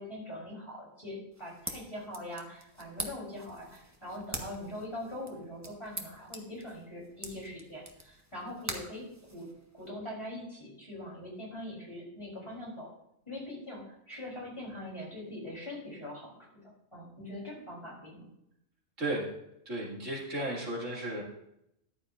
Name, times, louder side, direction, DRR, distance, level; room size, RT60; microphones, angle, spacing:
voice 1, 0.0-9.1 9.3-9.5 9.7-12.9 13.3-16.5 16.9-18.3, left 1 dB, 20° left, -4 dB, 3.6 m, -42 dB
sound 1, 1.3-9.9, right 1 dB, 15° right, 0.9 m, -45 dB
voice 2, 19.7-21.2, right 1 dB, 65° right, -3 dB, 2.8 m, -34 dB
14.0 x 10.0 x 2.5 m, 0.78 s
omnidirectional pair, 1.4 m